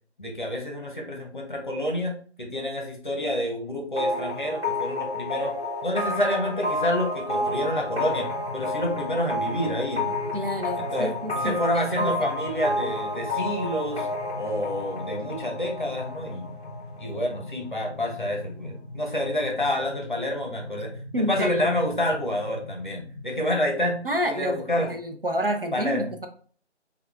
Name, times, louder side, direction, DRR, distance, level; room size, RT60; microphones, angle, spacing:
voice 1, 0.2-5.6 5.8-10.2 10.8-14.1 14.4-16.5 17.0-24.9 25.7-26.1, left 1 dB, 45° left, 1 dB, 0.8 m, -28 dB
sound 1, 4.0-17.5, left 1 dB, ahead, 1.2 m, -31 dB
sound 2, 7.4-23.4, left 2 dB, 20° right, 1.2 m, -41 dB
voice 2, 10.3-12.1 21.1-21.7 24.0-26.3, equal, 55° right, 6 dB, 0.6 m, -29 dB
6.1 x 2.4 x 2.3 m, 0.44 s
figure-of-eight pair, 165°, 35 cm